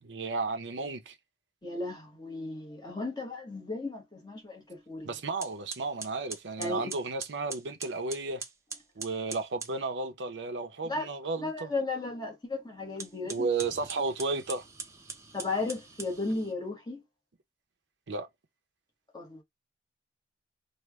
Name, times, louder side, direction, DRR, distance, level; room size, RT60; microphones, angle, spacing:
voice 1, 0.0-1.1 5.0-8.4 9.0-11.7 13.3-14.6 18.1-18.3, right 3 dB, 85° right, 0.7 m, -33 dB
voice 2, 1.6-5.1 6.6-6.9 10.8-11.1 11.4-13.5 15.3-17.0 19.1-19.4, left 3 dB, 25° left, 1.0 m, -35 dB
sound 1, 4.9-5.0 5.4-9.8 12.9-16.6, right 4 dB, 15° right, 0.6 m, -43 dB
3.2 x 2.1 x 3.5 m
head